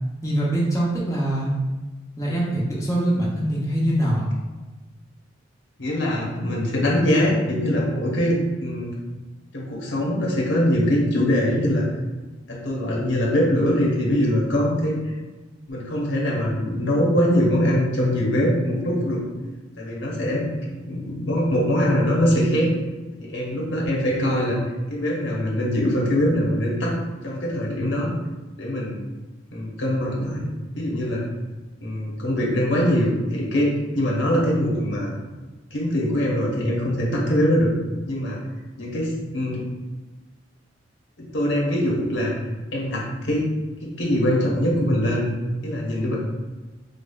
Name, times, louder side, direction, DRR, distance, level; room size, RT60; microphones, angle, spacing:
voice 1, 0.2-1.5 2.2-4.2, right 1 dB, 15° left, -6 dB, 0.6 m, -23 dB
voice 2, 5.8-8.9 9.5-11.8 12.5-15.1 15.7-19.2 19.8-20.5 20.9-22.7 23.2-24.6 24.9-26.9 27.2-28.1 28.6-29.0 29.5-31.2 31.8-33.7 33.9-35.1 35.7-37.7 38.1-38.4 38.8-39.6 41.2-42.3 42.7-43.5 43.8-45.2 45.6-46.1, equal, 70° left, -3 dB, 1.0 m, -22 dB
5.0 x 2.3 x 2.3 m, 1.2 s
head